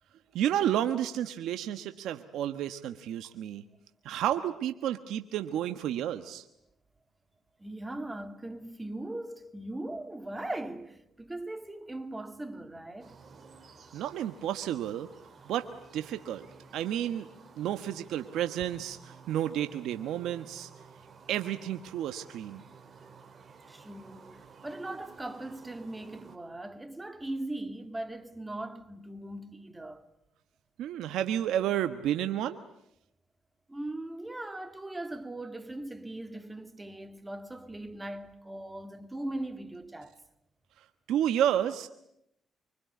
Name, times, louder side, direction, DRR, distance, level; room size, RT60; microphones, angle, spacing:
voice 1, 0.3-3.6 4.0-6.4 13.9-15.1 15.4-16.5 16.7-17.3 17.6-20.7 21.3-22.6 30.8-32.6 40.8-41.9, right 11 dB, 85° right, 1.3 m, -31 dB
voice 2, 7.6-13.2 23.7-30.0 33.7-40.2, right 1 dB, 15° right, 2.4 m, -39 dB
sound 1, 13.0-26.4, right 5 dB, 40° right, 4.2 m, -53 dB
26.0 x 24.0 x 9.5 m
cardioid pair, 90°, 0 cm